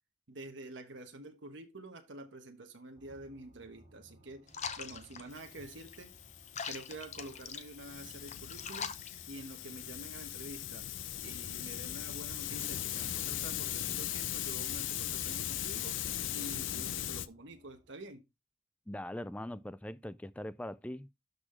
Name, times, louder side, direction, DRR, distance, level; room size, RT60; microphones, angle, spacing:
voice 1, 0.3-4.5 4.8-6.1 6.6-8.9 9.3-10.9 11.2-16.0 16.3-18.2, right 1 dB, 80° right, 1.3 m, -48 dB
sound 1, 2.9-18.1, right 1 dB, 40° right, 4.1 m, -63 dB
sound 2, 4.5-9.9, left 6 dB, 40° left, 0.8 m, -44 dB
Hiss, 5.3-17.3, left 11 dB, 90° left, 0.5 m, -39 dB
voice 2, 18.9-21.1, left 1 dB, 5° left, 0.3 m, -41 dB
12.0 x 4.2 x 3.2 m
head